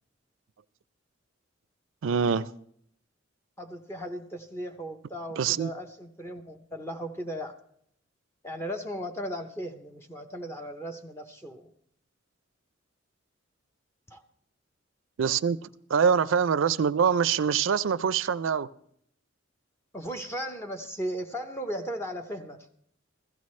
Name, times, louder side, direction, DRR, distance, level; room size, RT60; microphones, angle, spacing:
voice 1, 2.0-2.5 5.4-5.7 15.2-15.6 15.9-18.7, right 6 dB, 85° right, 0.4 m, -24 dB
voice 2, 3.6-7.5 8.4-11.7 14.1-14.2 19.9-22.7, equal, 15° left, 0.6 m, -36 dB
16.0 x 14.0 x 3.2 m
head